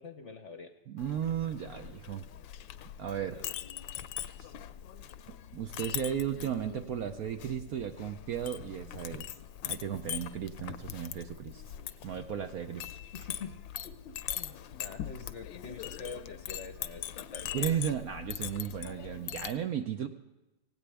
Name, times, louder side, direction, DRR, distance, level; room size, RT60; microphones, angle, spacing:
voice 1, 0.0-0.7 3.2-3.5 13.0-13.5 13.8-17.5, left 4 dB, 50° left, 6 dB, 0.9 m, -46 dB
voice 2, 0.9-2.3 3.0-3.4 4.4-4.5 5.5-9.4 9.7-11.6 12.0-13.0 17.5-20.1, right 9 dB, 65° right, 7 dB, 0.9 m, -35 dB
Chink clink, 1.0-19.5, left 11 dB, 80° left, 1.4 m, -42 dB
17.5 x 17.5 x 3.4 m, 1.0 s
omnidirectional pair, 2.1 m